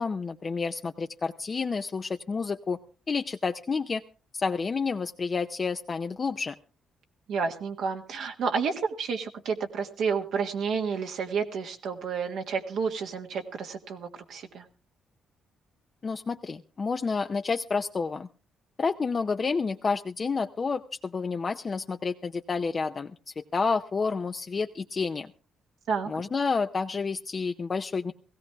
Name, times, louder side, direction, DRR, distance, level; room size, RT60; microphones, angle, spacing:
voice 1, 0.0-2.8 3.1-4.0 4.3-6.6 16.0-18.3 18.8-25.3 26.1-28.1, left 4 dB, 35° left, 6 dB, 0.6 m, -29 dB
voice 2, 7.3-14.6 25.9-26.2, right 5 dB, 75° right, 3 dB, 1.6 m, -30 dB
17.5 x 16.0 x 3.4 m, 0.36 s
cardioid pair, 90°, 0 cm